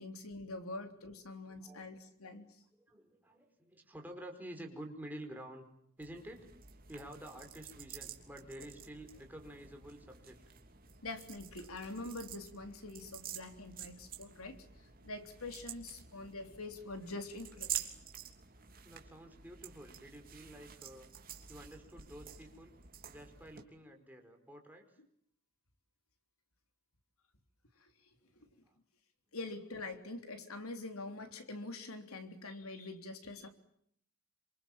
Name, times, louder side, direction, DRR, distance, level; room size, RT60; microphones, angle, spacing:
voice 1, 0.0-2.5 11.0-14.7 15.0-17.8 27.8-27.9 29.3-33.5, left 2 dB, 90° left, 7 dB, 3.5 m, -45 dB
voice 2, 1.4-1.8 2.7-5.6 6.0-6.5 6.9-10.4 18.5-21.1 21.5-22.7 23.1-25.0 28.4-28.8, right 1 dB, 10° right, 3 dB, 5.1 m, -50 dB
sound 1, 6.0-23.6, right 9 dB, 45° right, 3.2 m, -49 dB
28.5 x 26.0 x 7.5 m, 0.69 s
head